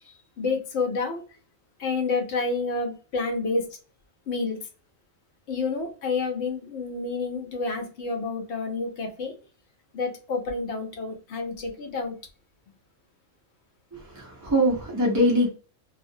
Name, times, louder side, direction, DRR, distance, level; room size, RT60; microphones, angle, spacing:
voice 1, 0.4-1.2 1.8-3.7 4.3-4.6 5.5-9.3 9.9-12.2, left 3 dB, 65° left, 0.9 m, -29 dB
voice 2, 13.9-15.5, equal, 25° right, 0.4 m, -23 dB
2.4 x 2.1 x 2.6 m
omnidirectional pair, 1.3 m